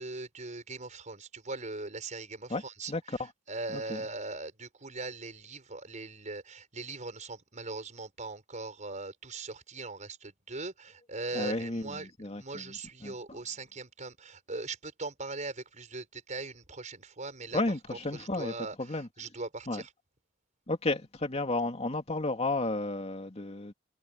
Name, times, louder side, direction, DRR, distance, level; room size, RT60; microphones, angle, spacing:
voice 1, 0.0-3.2 3.5-12.1 12.3-17.6 17.9-19.9, right 3 dB, 40° right, 5.1 m, -40 dB
voice 2, 11.3-13.4 17.5-19.1 19.7-19.8 20.7-23.7, left 2 dB, 35° left, 2.6 m, -33 dB
head